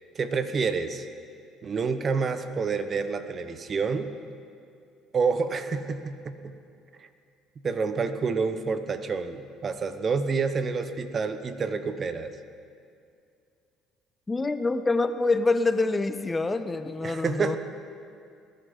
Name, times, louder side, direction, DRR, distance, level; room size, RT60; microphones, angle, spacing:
voice 1, 0.1-1.1 1.6-4.1 5.1-6.5 7.0-7.1 7.6-12.3 17.0-17.6, right 5 dB, 40° right, 10 dB, 1.0 m, -28 dB
voice 2, 14.3-17.6, left 3 dB, 20° left, 11 dB, 0.6 m, -26 dB
20.0 x 10.5 x 5.5 m, 2.5 s
supercardioid pair, 80°, 0 cm